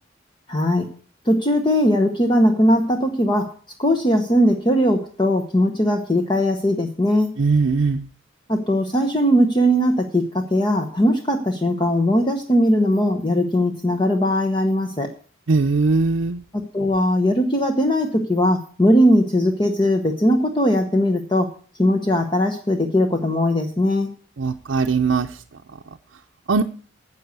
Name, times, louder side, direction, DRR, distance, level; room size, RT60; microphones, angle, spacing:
voice 1, 0.5-0.9 1.3-3.5 3.8-7.3 8.5-15.1 16.5-21.5 21.8-24.1, equal, 25° left, 5 dB, 0.9 m, -19 dB
voice 2, 7.4-8.1 15.5-16.4 24.4-25.3 26.5-26.6, right 4 dB, 75° right, 2 dB, 0.6 m, -20 dB
10.0 x 7.0 x 8.1 m, 0.43 s
head